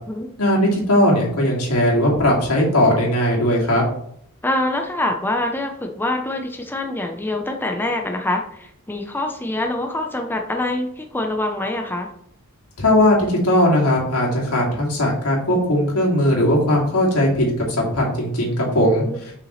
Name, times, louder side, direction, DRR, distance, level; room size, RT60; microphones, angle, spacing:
voice 1, 0.4-3.8 12.8-19.0, left 1 dB, 85° left, -3 dB, 2.4 m, -18 dB
voice 2, 4.4-12.1 19.0-19.2, left 1 dB, 10° left, 3 dB, 0.6 m, -25 dB
6.6 x 5.7 x 3.1 m, 0.70 s
head